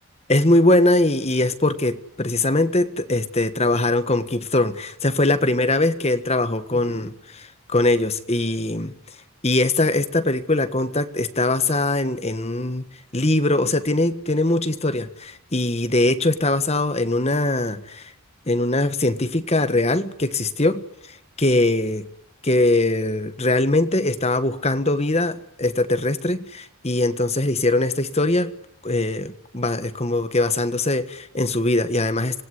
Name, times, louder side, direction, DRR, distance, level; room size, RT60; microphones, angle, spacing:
voice 1, 0.3-8.9 9.4-12.8 13.1-18.1 18.5-20.9 21.4-22.1 22.4-28.5 28.8-32.4, left 2 dB, 30° left, 11 dB, 1.5 m, -21 dB
26.0 x 20.0 x 9.9 m, 0.78 s
head